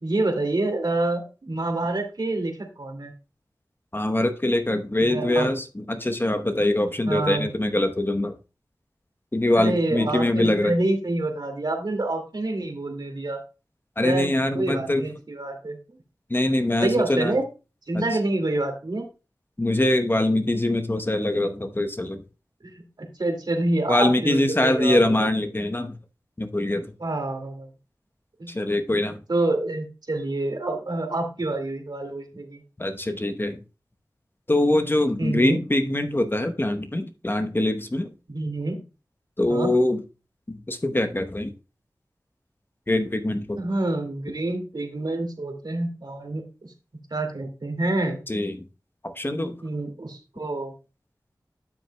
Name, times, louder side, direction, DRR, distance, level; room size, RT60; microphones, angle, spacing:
voice 1, 0.0-3.1 5.0-5.5 7.1-7.5 9.5-13.4 14.0-15.8 16.8-17.4 17.9-19.1 22.8-25.3 27.0-27.7 28.4-28.5 29.3-32.6 35.2-35.6 38.3-38.8 39.5-39.7 43.6-46.7 47.1-48.2 49.4-50.7, right 2 dB, 65° right, 2.2 m, -27 dB
voice 2, 3.9-8.3 9.3-10.7 14.0-15.0 16.3-17.4 17.9-18.0 19.6-22.2 23.9-25.9 26.4-26.9 28.5-29.2 32.8-33.6 34.5-38.1 39.4-40.0 40.5-41.5 42.9-43.6 48.3-48.6 49.0-49.5, left 1 dB, 30° left, 0.9 m, -23 dB
12.0 x 6.5 x 2.2 m
wide cardioid pair, 45°, 8 cm